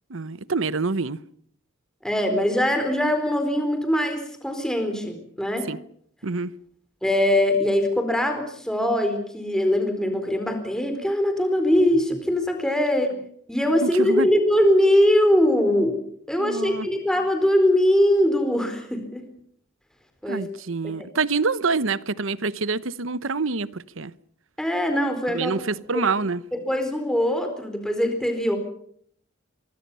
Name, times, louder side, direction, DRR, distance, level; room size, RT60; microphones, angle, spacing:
voice 1, 0.1-1.2 5.7-5.8 6.2-6.5 13.8-14.3 16.4-16.9 20.3-24.1 25.3-26.4, right 4 dB, 70° right, 0.9 m, -26 dB
voice 2, 2.0-5.7 7.0-13.1 13.5-16.0 16.3-19.2 20.2-20.4 20.8-21.1 24.6-25.5 25.9-26.1 26.5-28.6, left 1 dB, 5° left, 4.3 m, -22 dB
26.0 x 23.5 x 5.6 m
head